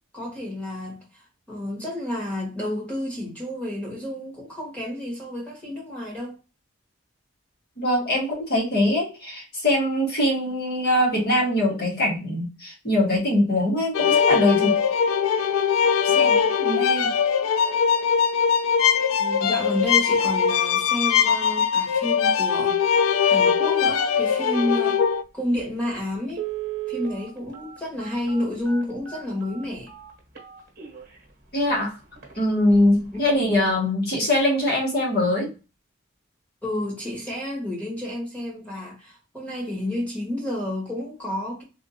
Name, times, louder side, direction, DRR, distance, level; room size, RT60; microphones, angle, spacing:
voice 1, 0.1-6.3 16.1-16.5 19.2-25.0 25.3-26.5 26.9-29.9 36.6-41.6, left 1 dB, 5° left, 1.5 m, -30 dB
voice 2, 7.8-14.8 16.0-16.3 16.6-17.1 31.5-31.9 32.4-35.5, left 1 dB, 50° left, 1.5 m, -22 dB
sound 1, 13.9-25.2, left 7 dB, 90° left, 0.3 m, -21 dB
Telephone, 25.6-25.7 26.3-31.2 31.7-31.8 32.2-32.3 32.7-33.0 33.3-33.4, right 12 dB, 50° right, 1.2 m, -36 dB
3.5 x 2.4 x 2.7 m
head